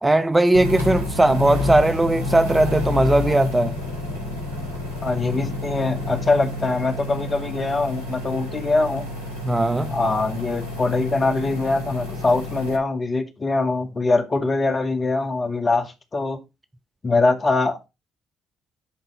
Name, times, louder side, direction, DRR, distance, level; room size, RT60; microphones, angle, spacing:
voice 1, 0.0-3.8 9.4-10.0, right 2 dB, 15° right, 0.7 m, -19 dB
sound 1, 0.5-12.8, left 2 dB, 80° right, 2.3 m, -29 dB
voice 2, 5.0-9.1 9.9-16.4 17.0-17.9, left 3 dB, 35° left, 2.1 m, -23 dB
11.0 x 4.0 x 5.2 m
figure-of-eight pair, 45°, 0 cm